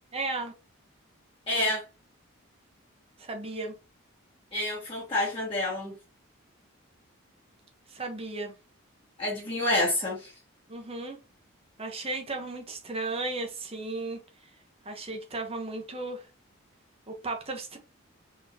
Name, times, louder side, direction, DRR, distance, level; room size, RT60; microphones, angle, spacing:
voice 1, 0.1-0.5 3.2-3.7 7.9-8.5 10.7-11.2 11.8-14.2 14.8-16.3 17.1-17.8, right 2 dB, 30° right, 1.0 m, -35 dB
voice 2, 1.5-1.8 4.5-5.9 9.2-10.3, left 1 dB, 25° left, 1.4 m, -28 dB
4.1 x 3.6 x 2.8 m
head